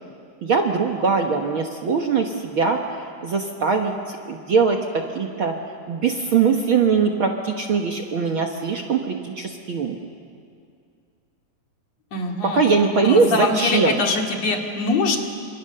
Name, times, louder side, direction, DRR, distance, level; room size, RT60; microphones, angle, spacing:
voice 1, 0.4-5.6 5.9-10.0 12.4-14.0, right 5 dB, 50° right, 2 dB, 1.8 m, -21 dB
voice 2, 12.1-12.6 13.0-15.2, left 3 dB, 55° left, 2 dB, 3.4 m, -23 dB
29.5 x 26.5 x 6.8 m, 2.3 s
omnidirectional pair, 3.6 m